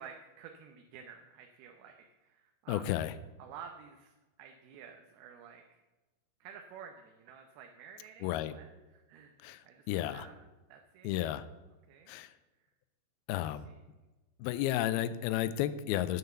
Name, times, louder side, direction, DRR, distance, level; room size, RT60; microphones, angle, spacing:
voice 1, 0.0-2.0 2.2-2.9 3.4-5.8 6.4-9.3 9.6-11.4 11.9-12.1, right 7 dB, 80° right, 4 dB, 2.8 m, -51 dB
voice 2, 2.7-3.1 8.2-8.5 9.4-10.3 11.0-11.4 12.1-12.3 13.3-13.7 14.4-16.2, left 13 dB, 90° left, 13 dB, 2.5 m, -32 dB
9.3 x 8.1 x 6.9 m, 1.1 s
omnidirectional pair, 4.4 m